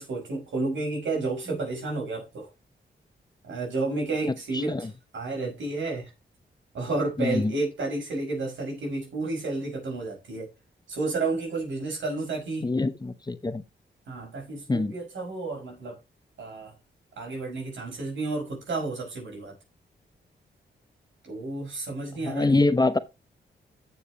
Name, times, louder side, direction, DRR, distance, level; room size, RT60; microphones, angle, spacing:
voice 1, 0.0-2.5 3.4-6.1 6.7-10.5 10.9-12.7 14.1-16.0 16.4-16.7 17.2-19.5 21.2-22.5, right 3 dB, 85° right, 5.7 m, -31 dB
voice 2, 4.3-4.9 7.2-7.5 12.6-13.6 14.7-14.9 22.2-23.0, left 2 dB, 20° left, 0.8 m, -25 dB
14.0 x 7.1 x 2.9 m
cardioid pair, 65°, 19 cm